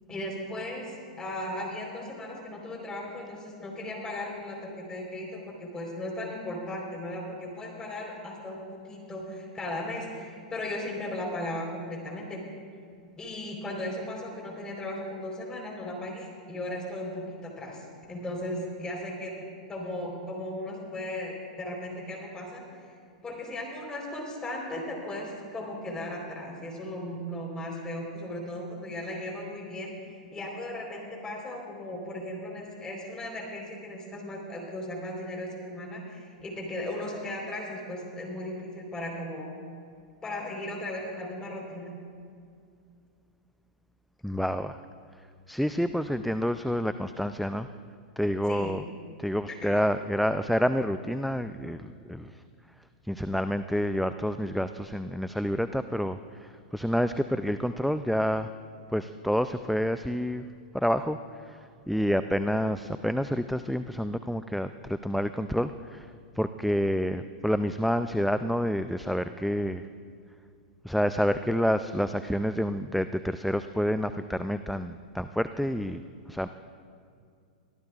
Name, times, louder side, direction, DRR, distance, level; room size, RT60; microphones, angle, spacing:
voice 1, 0.1-8.6 8.9-12.4 13.2-19.3 19.7-22.9 23.2-39.5 40.2-41.9 48.5-48.8 49.6-49.8, left 1 dB, 15° left, -1 dB, 4.0 m, -36 dB
voice 2, 44.2-44.8 45.2-47.7 48.2-48.8 49.2-52.4 53.0-58.5 58.9-60.5 60.7-69.9 70.8-76.0 76.3-76.5, equal, ahead, 10 dB, 0.3 m, -28 dB
24.0 x 14.0 x 2.4 m, 2.4 s
hypercardioid pair, 110°, 4 cm